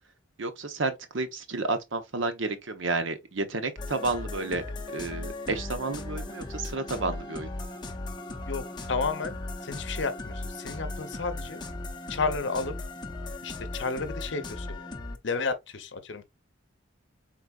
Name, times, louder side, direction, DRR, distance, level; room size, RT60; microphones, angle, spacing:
voice 1, 0.4-4.6 4.9-7.5, right 3 dB, 70° right, 0.8 m, -31 dB
sound 1, 3.8-15.2, left 2 dB, 20° left, 0.6 m, -37 dB
voice 2, 8.5-11.6 12.1-12.7 13.4-14.8 15.2-16.2, left 4 dB, 60° left, 0.7 m, -32 dB
4.5 x 3.9 x 2.3 m
head